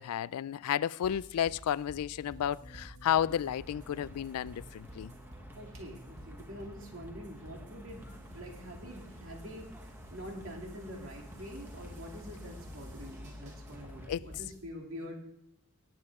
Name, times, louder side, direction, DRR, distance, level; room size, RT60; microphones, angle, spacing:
voice 1, 0.0-5.1 14.1-14.3, left 10 dB, 85° left, 0.3 m, -32 dB
sound 1, 1.0-14.6, equal, 35° right, 3.4 m, -49 dB
sound 2, 2.1-11.8, right 1 dB, 50° left, 1.2 m, -57 dB
sound 3, 3.2-14.1, equal, 10° right, 1.1 m, -54 dB
voice 2, 5.6-9.7 10.1-15.1, equal, 60° right, 2.9 m, -46 dB
18.0 x 8.8 x 3.6 m
head